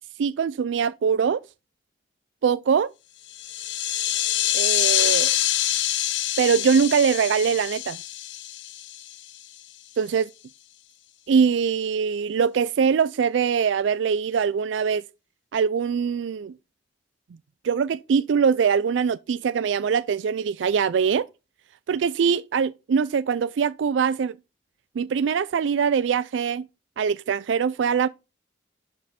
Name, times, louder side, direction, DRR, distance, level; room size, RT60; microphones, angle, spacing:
voice 1, 0.2-1.4 2.4-2.9 4.5-5.3 6.4-8.0 10.0-10.3 11.3-15.0 15.5-16.5 17.6-21.3 21.9-24.4 25.0-26.6 27.0-28.1, right 6 dB, 90° right, 0.4 m, -22 dB
sound 1, 3.3-9.4, left 12 dB, 85° left, 0.8 m, -25 dB
11.5 x 5.4 x 4.3 m
head